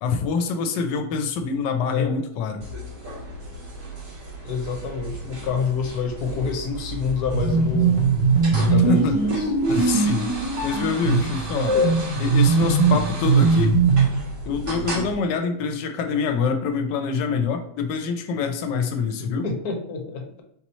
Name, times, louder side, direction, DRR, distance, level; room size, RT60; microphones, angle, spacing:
voice 1, 0.0-2.7 8.7-9.2 9.7-10.3 10.6-11.8 12.2-13.8 14.4-19.5, left 5 dB, 85° left, 6 dB, 1.3 m, -25 dB
sound 1, 2.6-15.1, right 2 dB, 70° right, 2.1 m, -35 dB
voice 2, 4.4-8.1 8.6-9.5 11.7-12.0 12.5-13.0 19.2-20.4, left 6 dB, 70° left, 2 dB, 1.2 m, -28 dB
sound 2, 7.3-14.2, right 4 dB, 85° right, 1.7 m, -20 dB
4.1 x 3.0 x 4.1 m, 0.74 s
omnidirectional pair, 1.8 m